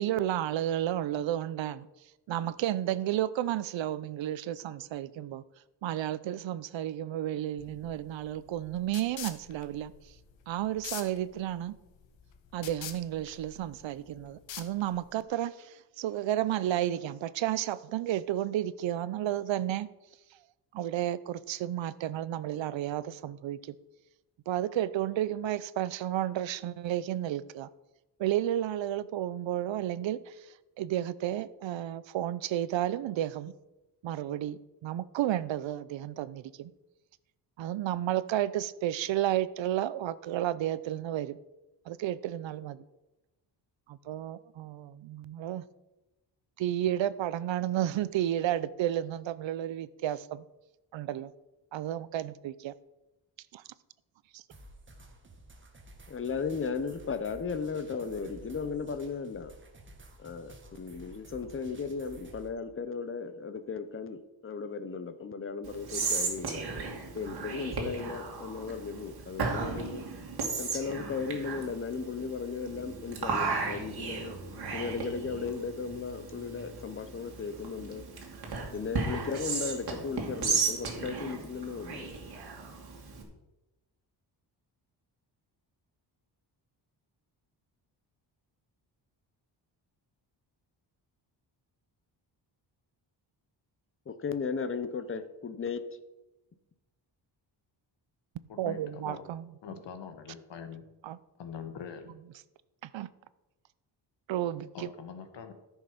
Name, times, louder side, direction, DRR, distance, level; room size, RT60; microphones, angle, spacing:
voice 1, 0.0-1.9 2.3-5.4 5.8-9.9 10.5-11.7 12.5-19.9 20.7-23.7 24.5-27.7 28.2-30.4 30.8-33.5 34.0-36.7 37.6-41.4 41.9-42.8 43.9-45.6 46.6-50.4 50.9-51.3 51.7-52.7 53.5-53.6 54.3-54.4 98.6-99.4 101.0-101.2 102.9-103.1 104.3-104.9, right 12 dB, 85° right, 0.7 m, -32 dB
sound 1, 7.6-15.2, left 8 dB, 90° left, 1.2 m, -46 dB
sound 2, 54.5-62.5, right 1 dB, 25° right, 1.5 m, -52 dB
voice 2, 56.1-59.5 60.2-66.7 67.1-70.0 70.6-74.4 74.7-78.0 78.7-82.1 94.1-95.8, left 5 dB, 30° left, 0.8 m, -36 dB
Whispering, 65.6-83.2, right 4 dB, 55° right, 2.5 m, -35 dB
voice 3, 98.5-99.2 99.6-100.8 101.4-102.2 104.7-105.5, left 7 dB, 75° left, 1.5 m, -43 dB
14.0 x 6.4 x 5.1 m
wide cardioid pair, 155°, 44 cm